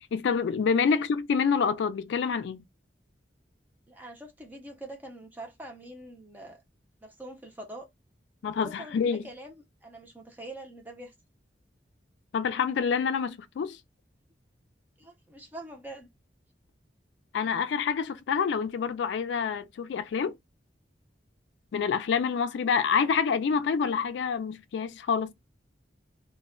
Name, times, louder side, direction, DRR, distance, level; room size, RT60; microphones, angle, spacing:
voice 1, 0.1-2.6 8.4-9.3 12.3-13.8 17.3-20.4 21.7-25.3, left 6 dB, 75° left, 0.3 m, -27 dB
voice 2, 3.9-6.6 7.0-7.9 8.5-9.5 9.8-11.1 13.0-13.1 15.0-16.1, right 1 dB, 10° right, 0.5 m, -44 dB
2.1 x 2.1 x 3.6 m
head